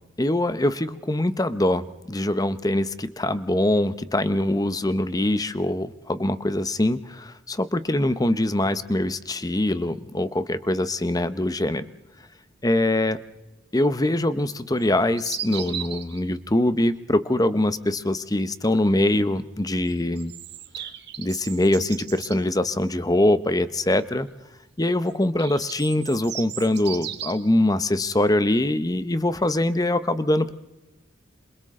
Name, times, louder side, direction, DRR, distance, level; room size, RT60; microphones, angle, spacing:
voice 1, 0.2-11.8 12.6-13.2 13.7-20.3 20.8-20.9 21.2-24.3 24.8-30.5, left 1 dB, 20° left, 13 dB, 0.9 m, -23 dB
sound 1, 14.8-16.2 19.9-22.4 25.1-27.5, right 10 dB, 60° right, 1.8 m, -36 dB
28.0 x 27.0 x 3.8 m, 1.0 s
head